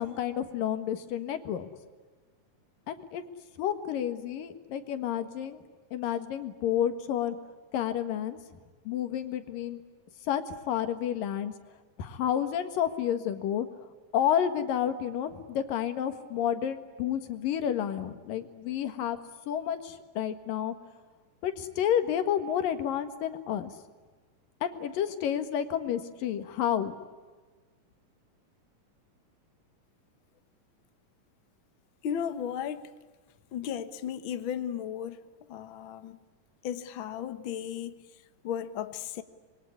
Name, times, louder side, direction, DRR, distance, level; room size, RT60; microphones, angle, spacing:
voice 1, 0.0-1.7 2.9-3.2 3.6-5.6 5.9-7.4 7.7-8.4 8.8-9.8 10.2-11.5 12.0-13.7 14.1-19.2 19.5-20.7 21.4-23.7 24.6-26.9, left 9 dB, 80° left, 9 dB, 3.3 m, -30 dB
voice 2, 32.0-32.9 33.5-35.2 35.5-36.2 36.6-37.9 38.4-39.2, left 9 dB, 60° left, 11 dB, 1.3 m, -35 dB
26.0 x 23.0 x 9.9 m, 1.4 s
omnidirectional pair, 3.9 m